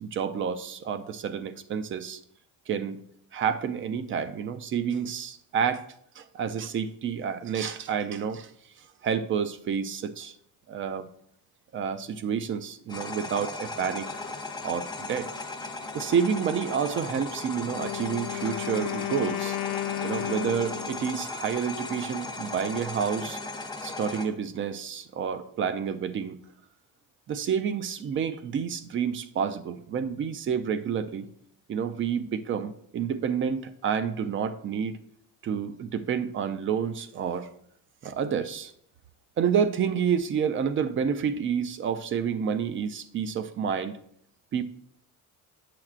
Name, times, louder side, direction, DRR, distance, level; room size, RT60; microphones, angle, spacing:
voice 1, 0.0-2.2 2.7-3.0 3.3-5.8 6.2-8.5 9.0-10.3 10.7-11.1 11.7-14.1 14.6-15.3 15.9-19.6 20.0-23.4 23.8-26.4 27.3-31.3 31.7-35.0 35.4-37.5 38.0-38.7 39.4-44.0 44.5-44.6, right 7 dB, 40° right, 12 dB, 0.4 m, -29 dB
sound 1, 12.9-24.3, left 3 dB, 15° left, 0.5 m, -37 dB
Wind instrument woodwind instrument, 17.6-21.1, left 16 dB, 60° left, 0.5 m, -33 dB
8.7 x 5.9 x 2.4 m, 0.70 s
cardioid pair, 160°, 33 cm